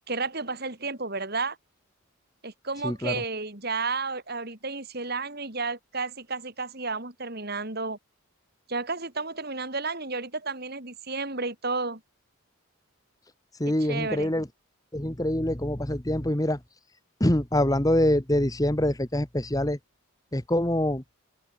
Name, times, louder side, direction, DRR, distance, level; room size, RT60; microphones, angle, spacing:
voice 1, 0.1-1.6 2.4-8.0 8.7-12.0 13.9-14.3, right 3 dB, 45° right, 3.4 m, -32 dB
voice 2, 2.8-3.2 13.6-14.5 14.9-16.6 17.2-19.8 20.3-21.0, left 1 dB, 15° left, 1.4 m, -25 dB
open air
head